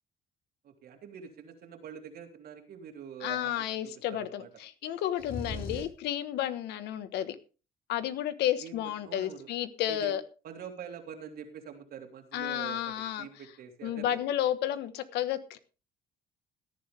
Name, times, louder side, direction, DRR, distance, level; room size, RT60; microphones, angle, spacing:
voice 1, 0.6-3.5 3.8-4.5 5.5-5.8 8.6-9.5 9.9-10.2 10.4-14.2, right 7 dB, 65° right, 4 dB, 3.2 m, -45 dB
voice 2, 3.2-7.4 7.9-10.2 12.3-13.3 13.8-15.6, left 11 dB, 80° left, 12 dB, 1.4 m, -32 dB
sound 1, 5.2-6.0, left 3 dB, 65° left, 5.1 m, -38 dB
17.5 x 10.5 x 3.4 m, 0.33 s
cardioid pair, 110°, 17 cm